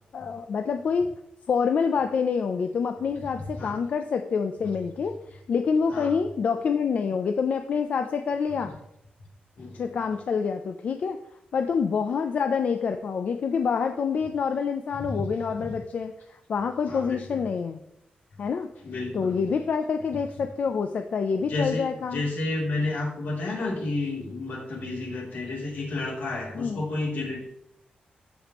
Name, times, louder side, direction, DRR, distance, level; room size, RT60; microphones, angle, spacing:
voice 1, 0.1-1.1 1.5-8.7 9.7-11.2 11.5-17.8 18.4-18.7 19.1-22.3 26.5-26.8, left 6 dB, 55° left, 6 dB, 0.5 m, -27 dB
voice 2, 16.9-17.5 18.8-19.4 21.5-21.8 22.1-27.5, left 2 dB, 85° left, -3 dB, 3.1 m, -31 dB
14.0 x 5.2 x 3.0 m, 0.79 s
wide cardioid pair, 180°, 3 cm